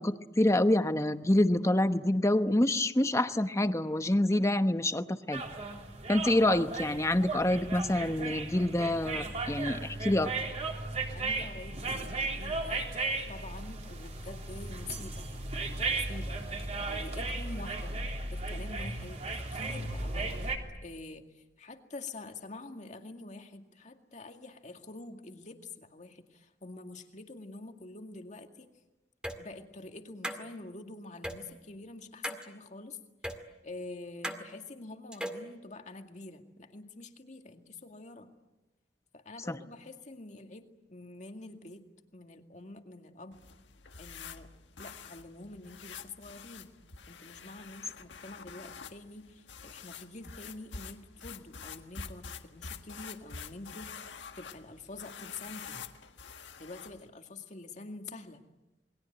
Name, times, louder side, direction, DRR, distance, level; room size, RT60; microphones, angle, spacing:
voice 1, 0.0-5.4 6.1-10.3 39.5-39.6, left 1 dB, 15° left, 10 dB, 1.0 m, -27 dB
sound 1, 5.3-20.6, right 3 dB, 40° right, 3.3 m, -36 dB
voice 2, 11.1-16.6 16.9-18.0 18.3-20.5 20.8-28.7 29.4-33.0 33.6-38.3 39.1-41.8 42.1-43.4 44.0-44.5 44.8-46.7 47.1-55.8 56.6-58.4, left 2 dB, 40° left, 5 dB, 2.1 m, -46 dB
sound 2, 29.2-29.4 30.2-30.4 31.2-31.4 32.2-32.5 33.2-33.4 34.2-34.4 35.1-35.4, equal, 5° right, 2.0 m, -36 dB
sound 3, 43.3-57.1, left 6 dB, 85° left, 1.6 m, -47 dB
28.0 x 21.5 x 9.1 m, 0.99 s
head